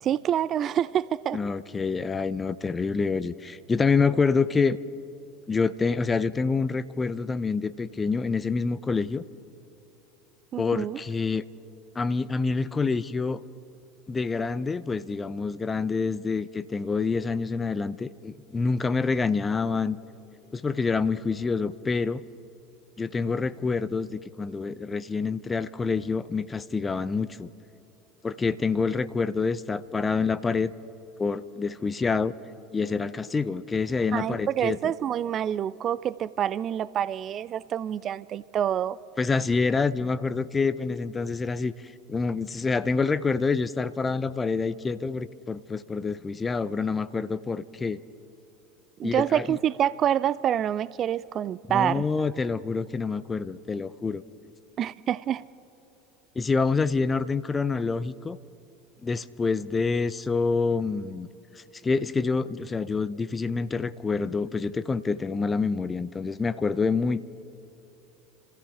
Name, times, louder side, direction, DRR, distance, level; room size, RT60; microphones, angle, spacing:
voice 1, 0.0-1.4 10.5-11.0 34.1-39.0 49.0-52.0 54.8-55.4, right 10 dB, 40° right, 0.3 m, -27 dB
voice 2, 1.3-4.8 5.5-9.2 10.6-11.4 12.0-13.4 14.1-20.0 20.5-22.2 23.0-27.5 28.2-30.7 31.2-32.3 32.7-34.8 39.2-41.7 42.1-48.0 49.0-49.6 51.7-54.2 56.4-58.4 59.0-61.3 61.6-67.3, left 4 dB, 20° left, 0.6 m, -27 dB
29.0 x 14.5 x 3.4 m
hypercardioid pair, 75°, 0 cm